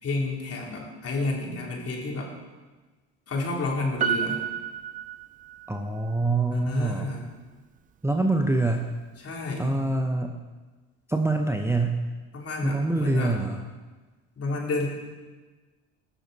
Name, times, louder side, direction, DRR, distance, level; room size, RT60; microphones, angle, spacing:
voice 1, 0.0-2.3 3.3-4.4 6.5-7.2 9.2-9.7 12.3-13.4 14.4-14.9, left 3 dB, 40° left, -2 dB, 3.4 m, -30 dB
Piano, 4.0-5.8 6.1-6.2, right 8 dB, 25° right, 0.4 m, -30 dB
voice 2, 5.7-7.1 8.0-8.9 9.6-10.4 11.1-12.1 12.6-13.6, right 2 dB, 5° right, 3 dB, 0.8 m, -25 dB
17.0 x 6.5 x 4.1 m, 1.3 s
hypercardioid pair, 75°, 36 cm